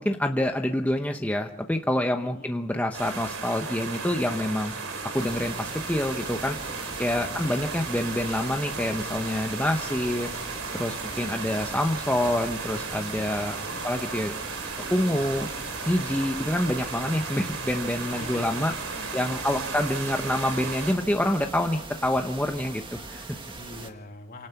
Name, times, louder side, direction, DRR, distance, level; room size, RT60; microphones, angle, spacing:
voice 1, 0.0-4.7 5.0-6.6 7.0-10.3 10.7-13.6 13.8-14.4 14.9-15.5 15.9-18.7 19.1-23.4, left 1 dB, 10° left, 4 dB, 0.9 m, -27 dB
voice 2, 2.2-2.5 7.1-7.6 10.8-11.4 13.6-13.9 14.9-15.4 18.0-18.6 18.9-19.8 23.5-24.5, left 2 dB, 45° left, 3 dB, 3.0 m, -44 dB
sound 1, 2.9-20.9, right 4 dB, 75° right, 4.0 m, -35 dB
sound 2, 5.1-23.9, right 3 dB, 25° right, 1.9 m, -41 dB
27.5 x 18.0 x 5.9 m, 0.78 s
head